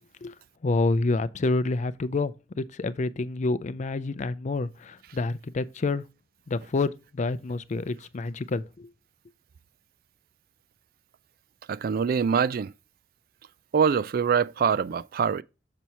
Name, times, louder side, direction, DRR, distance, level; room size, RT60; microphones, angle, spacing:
voice 1, 0.6-6.0 6.5-8.9, left 3 dB, 40° left, 0.4 m, -28 dB
voice 2, 11.7-12.7 13.7-15.4, right 6 dB, 55° right, 0.4 m, -24 dB
6.8 x 4.6 x 4.2 m
head